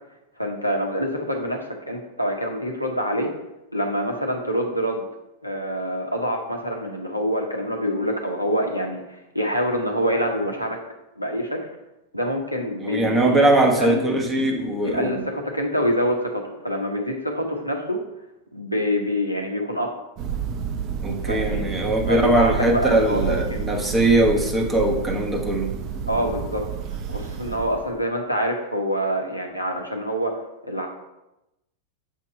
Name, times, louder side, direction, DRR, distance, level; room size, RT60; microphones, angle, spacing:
voice 1, 0.4-3.3 3.7-5.1 5.4-10.8 11.2-11.6 12.1-14.0 14.8-18.0 18.5-20.0 21.2-21.6 22.1-23.6 26.1-26.6 26.9-30.9, equal, 90° left, 2 dB, 0.9 m, -26 dB
voice 2, 12.8-15.2 21.0-25.7, right 1 dB, 15° right, 1 dB, 1.2 m, -21 dB
Thunder, 20.2-28.1, right 7 dB, 35° right, 0.6 m, -30 dB
7.3 x 2.9 x 5.3 m, 0.91 s
figure-of-eight pair, 90°, 0 cm